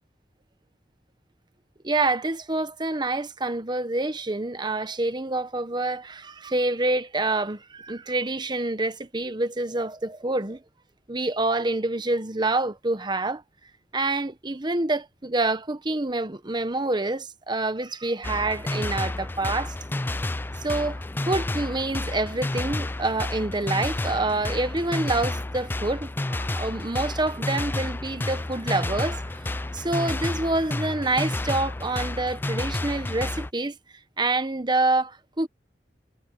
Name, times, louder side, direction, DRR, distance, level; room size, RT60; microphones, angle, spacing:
voice 1, 1.8-10.6 11.1-13.4 13.9-19.7 20.6-33.8 34.2-35.5, right 2 dB, 25° right, 1.1 m, -27 dB
sound 1, 18.2-33.5, left 2 dB, 10° left, 0.4 m, -30 dB
head